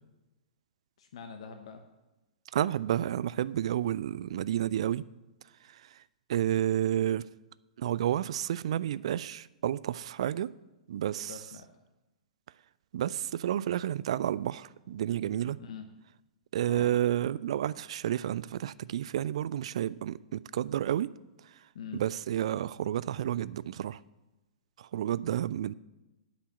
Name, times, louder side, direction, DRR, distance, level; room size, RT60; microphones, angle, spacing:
voice 1, 1.0-1.8 11.2-11.7 15.6-15.9 16.7-16.9 21.7-22.0, left 6 dB, 55° left, 0.9 m, -44 dB
voice 2, 2.5-5.0 6.3-7.3 7.8-10.5 10.9-11.3 12.9-15.6 16.5-21.1 21.9-24.0 24.8-25.7, right 11 dB, 50° right, 0.3 m, -30 dB
8.2 x 6.0 x 7.8 m
figure-of-eight pair, 110°, 4 cm